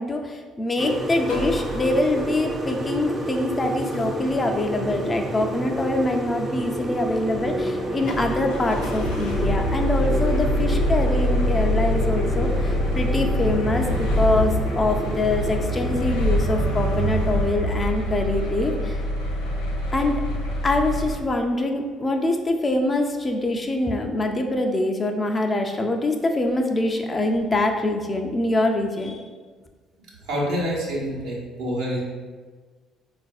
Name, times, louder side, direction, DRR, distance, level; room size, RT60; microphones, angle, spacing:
voice 1, 0.0-19.0 19.9-20.2 20.6-29.3, left 2 dB, 30° left, 3 dB, 0.4 m, -24 dB
sound 1, 0.8-15.9, right 1 dB, 35° right, 0.5 m, -30 dB
sound 2, 1.2-2.5 8.1-21.2, equal, 90° left, 0.4 m, -25 dB
sound 3, 7.3-23.9, left 1 dB, 60° left, 0.9 m, -37 dB
voice 2, 30.2-32.0, equal, 75° right, -4 dB, 0.8 m, -27 dB
4.0 x 2.5 x 2.3 m, 1.4 s
hypercardioid pair, 55°, 0 cm